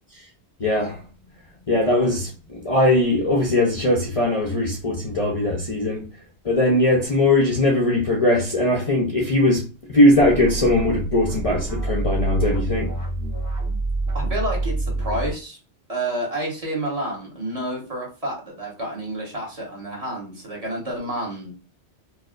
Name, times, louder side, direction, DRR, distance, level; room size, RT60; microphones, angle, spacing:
voice 1, 0.6-1.0 1.7-6.0 6.4-12.9, left 1 dB, 40° left, 0.6 m, -20 dB
sound 1, 10.2-15.3, right 2 dB, 15° right, 0.9 m, -27 dB
voice 2, 14.1-15.6 15.9-21.5, right 1 dB, 35° right, 1.2 m, -29 dB
4.6 x 2.1 x 2.4 m
omnidirectional pair, 1.2 m